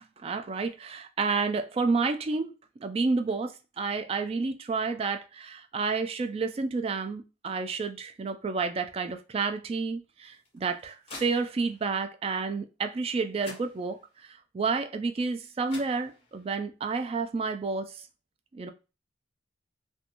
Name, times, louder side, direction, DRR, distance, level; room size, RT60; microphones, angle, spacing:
voice 1, 0.2-2.5 2.8-14.3 14.5-18.0 18.5-18.7, right 4 dB, 35° right, 0.3 m, -30 dB
sound 1, 10.2-11.9 13.0-13.1 13.4-14.2 15.4-15.5 15.7-16.5, left 2 dB, 35° left, 1.2 m, -47 dB
2.5 x 2.2 x 2.8 m
head